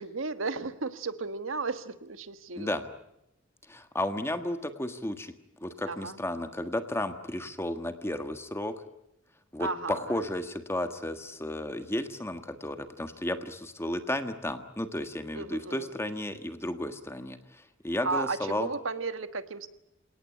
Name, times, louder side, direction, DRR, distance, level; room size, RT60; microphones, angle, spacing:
voice 1, 0.0-2.8 5.9-6.2 9.6-10.2 15.3-15.9 18.0-19.7, right 4 dB, 90° right, 11 dB, 1.5 m, -34 dB
voice 2, 2.6-2.9 3.7-5.3 5.6-8.7 9.5-18.7, left 1 dB, 15° left, 8 dB, 1.5 m, -33 dB
28.5 x 18.5 x 9.7 m, 0.86 s
head